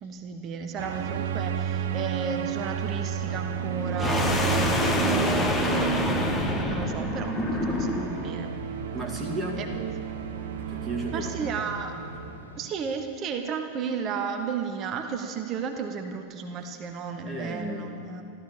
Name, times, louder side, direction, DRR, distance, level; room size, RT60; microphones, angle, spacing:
voice 1, 0.0-6.0 6.6-7.4 7.6-8.5 9.6-10.1 11.1-11.9 12.6-18.2, right 5 dB, 35° right, 5 dB, 1.1 m, -34 dB
sound 1, 0.8-12.4, right 9 dB, 55° right, 0.7 m, -31 dB
sound 2, 2.3-12.7, left 1 dB, 70° left, 1.4 m, -43 dB
sound 3, 4.0-8.3, left 2 dB, 15° left, 1.5 m, -27 dB
voice 2, 8.9-9.6 10.7-11.5 17.2-17.9, right 1 dB, 10° right, -2 dB, 2.1 m, -33 dB
13.5 x 13.5 x 7.1 m, 2.4 s
figure-of-eight pair, 90°, 0 cm